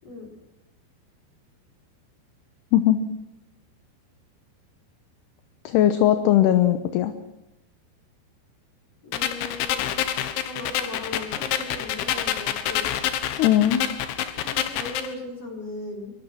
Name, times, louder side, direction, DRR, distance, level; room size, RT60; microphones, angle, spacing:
voice 1, 5.6-7.1 13.4-13.8, left 12 dB, 75° left, 9 dB, 3.0 m, -19 dB
voice 2, 9.0-10.1 10.5-12.9 14.4-16.1, left 2 dB, 35° left, -1 dB, 5.9 m, -37 dB
sound 1, 9.1-15.1, left 10 dB, 90° left, 3.8 m, -28 dB
24.0 x 23.0 x 6.3 m, 0.91 s
omnidirectional pair, 5.1 m